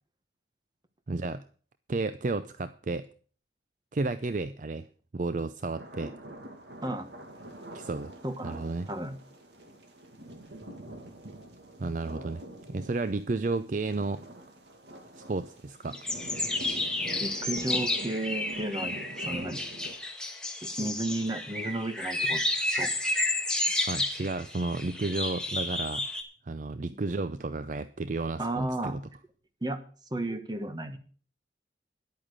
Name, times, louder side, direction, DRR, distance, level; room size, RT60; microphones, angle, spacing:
voice 1, 1.1-1.4 1.9-3.1 3.9-4.9 5.1-6.1 7.7-8.1 8.4-8.9 11.8-12.4 12.7-14.2 15.2-16.0 23.8-26.1 26.5-29.0, right 3 dB, 45° right, 13 dB, 0.5 m, -32 dB
sound 1, 5.8-20.0, right 1 dB, 80° right, 2.1 m, -45 dB
voice 2, 8.2-8.6 8.9-9.2 17.2-19.6 20.6-22.4 22.8-22.9 28.4-29.0 29.6-29.8 30.1-31.0, right 2 dB, 25° right, 8 dB, 1.3 m, -33 dB
sound 2, 15.9-26.2, left 2 dB, 5° left, 1.4 m, -31 dB
10.5 x 8.8 x 6.5 m, 0.42 s
head